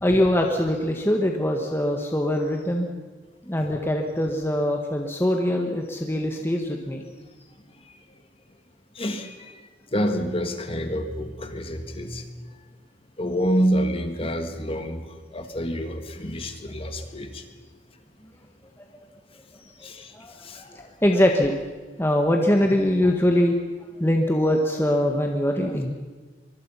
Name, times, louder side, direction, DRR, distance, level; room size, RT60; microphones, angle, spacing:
voice 1, 0.0-2.9 3.5-7.0 18.8-18.9 19.8-19.9 20.1-20.3 20.7-21.5 22.0-23.6 24.0-25.9, left 1 dB, 15° left, 2 dB, 1.6 m, -22 dB
voice 2, 9.0-9.6 9.9-12.2 13.2-15.0 15.3-17.4 19.8-20.1 20.4-20.9, equal, 30° left, 6 dB, 2.1 m, -27 dB
24.0 x 23.0 x 5.8 m, 1.4 s
head